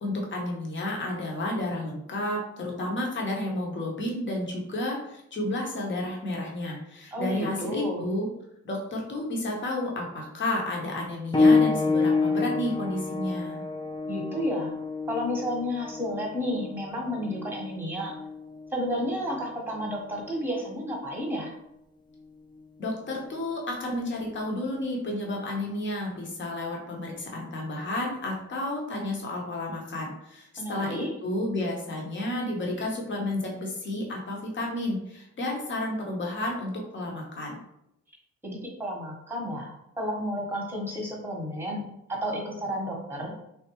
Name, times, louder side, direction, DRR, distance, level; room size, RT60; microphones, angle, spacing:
voice 1, 0.0-8.3 8.6-13.6 22.8-37.6, left 1 dB, 40° left, -1 dB, 1.0 m, -31 dB
voice 2, 7.1-8.1 14.1-14.7 15.1-18.1 18.7-21.5 30.6-31.1 38.4-41.8 42.1-43.3, equal, 5° right, -2 dB, 1.1 m, -31 dB
sound 1, 11.3-21.6 22.5-22.6 23.4-23.5, left 4 dB, 15° left, 0.4 m, -28 dB
3.3 x 2.5 x 3.0 m, 0.80 s
cardioid pair, 90°, 30 cm